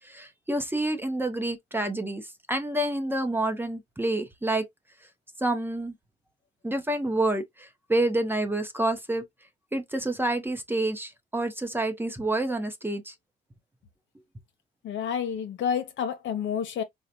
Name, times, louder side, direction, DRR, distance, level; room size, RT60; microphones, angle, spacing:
voice 1, 0.0-2.2 2.5-4.7 5.4-5.9 6.6-9.2 9.7-13.1, right 1 dB, 10° right, 0.7 m, -28 dB
voice 2, 14.8-16.8, left 7 dB, 70° left, 0.7 m, -29 dB
3.9 x 2.1 x 2.8 m
cardioid pair, 90°, 20 cm